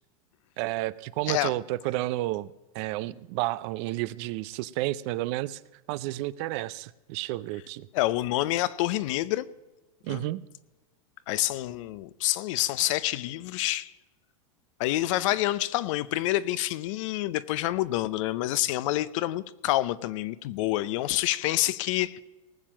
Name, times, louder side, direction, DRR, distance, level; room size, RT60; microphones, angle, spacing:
voice 1, 0.6-5.6 5.9-7.9 10.0-10.4, right 17 dB, 50° right, 0.5 m, -31 dB
voice 2, 7.9-9.5 10.1-10.3 11.3-13.9 14.8-22.2, left 16 dB, 60° left, 0.6 m, -27 dB
19.0 x 7.4 x 6.1 m
supercardioid pair, 130°, 18 cm